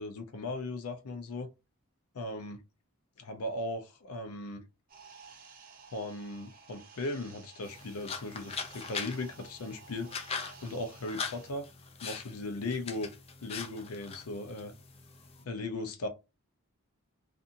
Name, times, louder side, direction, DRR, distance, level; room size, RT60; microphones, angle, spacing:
voice 1, 0.0-1.5 2.1-2.6 3.2-4.6 5.9-10.1 10.6-11.6 12.0-13.1 13.4-14.7 15.5-16.1, left 2 dB, 80° left, 0.6 m, -37 dB
sound 1, 4.9-11.5, right 5 dB, 40° right, 0.6 m, -54 dB
sound 2, 7.6-15.4, left 5 dB, 25° left, 0.4 m, -42 dB
2.6 x 2.5 x 2.5 m
head